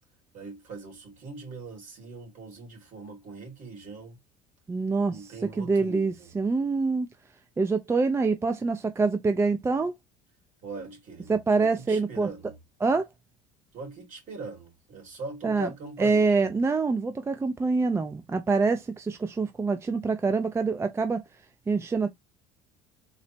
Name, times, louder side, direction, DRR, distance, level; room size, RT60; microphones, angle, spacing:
voice 1, 0.3-4.2 5.1-6.3 10.6-12.6 13.7-16.5, right 3 dB, 50° right, 2.3 m, -41 dB
voice 2, 4.7-7.1 7.6-9.9 11.3-12.3 12.8-13.1 15.4-15.7 16.0-21.2 21.7-22.1, right 4 dB, 15° right, 0.4 m, -25 dB
4.0 x 2.1 x 4.3 m
supercardioid pair, 100°, 16 cm